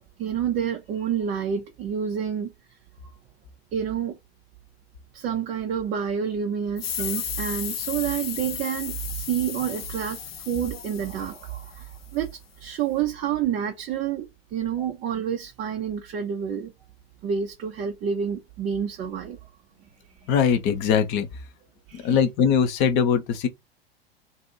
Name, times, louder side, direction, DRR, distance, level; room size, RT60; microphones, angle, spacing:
voice 1, 0.2-2.5 3.7-4.2 5.1-16.7 17.2-19.4 21.9-22.2, right 8 dB, 25° right, 0.6 m, -28 dB
sound 1, 6.8-12.1, left 10 dB, 70° left, 0.5 m, -34 dB
voice 2, 20.3-21.3 21.9-23.5, left 7 dB, 35° left, 0.8 m, -21 dB
2.7 x 2.6 x 4.2 m
figure-of-eight pair, 95°, 31 cm